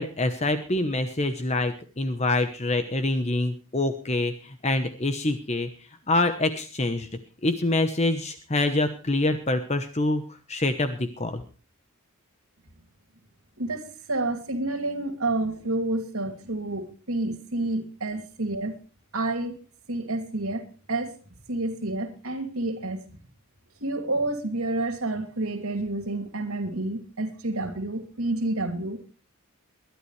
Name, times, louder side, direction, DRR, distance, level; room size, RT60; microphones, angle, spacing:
voice 1, 0.0-5.7 6.1-7.1 7.4-11.4, left 2 dB, 30° left, 1.0 m, -26 dB
voice 2, 13.6-18.8 19.1-19.6 19.9-21.2 21.5-23.0 23.8-29.1, right 2 dB, 70° right, 2.8 m, -29 dB
22.5 x 11.5 x 3.3 m
head